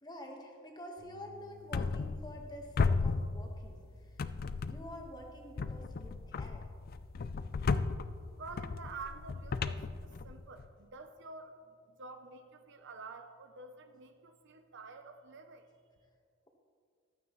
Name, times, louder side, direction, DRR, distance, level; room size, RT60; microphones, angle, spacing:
voice 1, 0.0-4.3 4.7-6.7, left 1 dB, 20° left, 1 dB, 1.3 m, -48 dB
sound 1, 1.0-7.2, left 3 dB, 80° right, 2.5 m, -60 dB
sound 2, 1.7-2.5 2.8-3.8 4.2-5.0 5.6-10.7, left 4 dB, 45° left, 0.4 m, -35 dB
sound 3, 2.6-8.0, left 1 dB, 80° left, 1.0 m, -56 dB
voice 2, 8.4-15.7, right 4 dB, 55° right, 7 dB, 0.7 m, -49 dB
15.0 x 12.5 x 3.1 m, 2.1 s
head